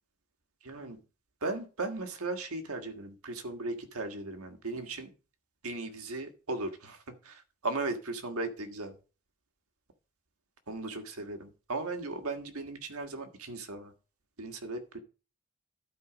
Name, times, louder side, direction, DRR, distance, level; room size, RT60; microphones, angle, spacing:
voice 1, 0.6-1.0 1.4-5.1 5.6-8.9 10.7-13.9 14.4-15.0, right 2 dB, 85° right, 1.6 m, -37 dB
12.0 x 4.6 x 5.0 m
head